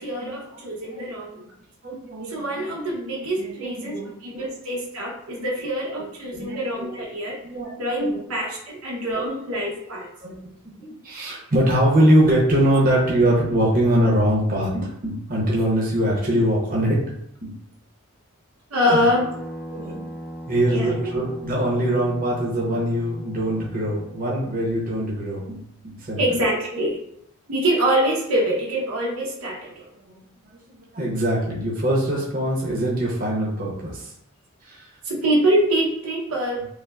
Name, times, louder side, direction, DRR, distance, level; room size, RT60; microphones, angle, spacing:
voice 1, 0.0-1.4 2.3-7.4 7.8-10.1 18.7-19.3 20.7-21.1 24.2-24.4 26.2-27.0 27.5-29.9 35.0-36.7, equal, 80° right, -3 dB, 0.9 m, -24 dB
voice 2, 1.8-2.7 3.4-4.5 6.3-7.0 7.4-8.2 10.2-10.5 10.8-17.0 17.4-17.5 18.9-19.0 19.7-20.0 20.5-26.2 30.1-30.2 30.9-34.1 34.7-34.8, right 1 dB, 40° right, -4 dB, 0.8 m, -23 dB
sound 1, 19.1-24.9, equal, 5° right, 0.3 m, -39 dB
5.3 x 2.1 x 2.3 m, 0.75 s
head